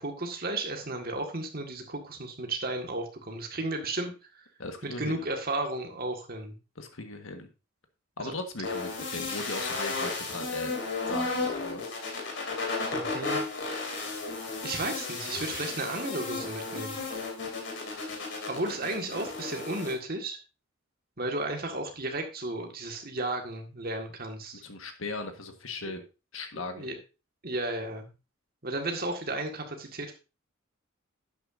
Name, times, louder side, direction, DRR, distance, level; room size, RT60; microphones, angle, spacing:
voice 1, 0.0-4.1 4.4-4.5 4.8-6.6 8.2-8.3 12.9-13.4 14.6-17.0 18.5-20.4 21.2-24.6 26.5-27.0 27.4-28.1 28.6-30.1, right 2 dB, 45° right, 3 dB, 1.9 m, -34 dB
voice 2, 4.6-5.2 6.7-7.5 8.2-10.7 11.1-12.0 24.6-26.0 26.3-26.9, left 3 dB, 75° left, 6 dB, 1.6 m, -38 dB
sound 1, 8.6-19.9, left 3 dB, 60° left, 3.0 m, -34 dB
11.5 x 8.8 x 2.7 m, 0.29 s
head